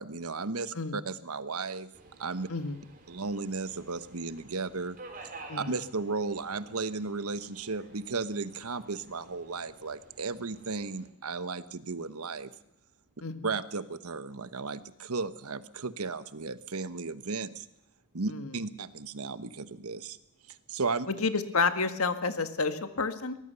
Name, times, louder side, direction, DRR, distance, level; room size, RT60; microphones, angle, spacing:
voice 1, 0.0-1.9 2.2-2.5 3.1-5.0 5.6-12.5 13.4-17.7 18.1-20.2 20.5-21.1, right 4 dB, 80° right, 13 dB, 1.1 m, -35 dB
Subway metro underground, 1.9-11.1, right 3 dB, 40° right, 4.1 m, -52 dB
voice 2, 2.5-2.8 5.5-5.7 13.2-13.5 18.3-18.5 21.1-23.4, left 4 dB, 75° left, 9 dB, 1.7 m, -30 dB
23.0 x 19.0 x 7.0 m, 0.78 s
head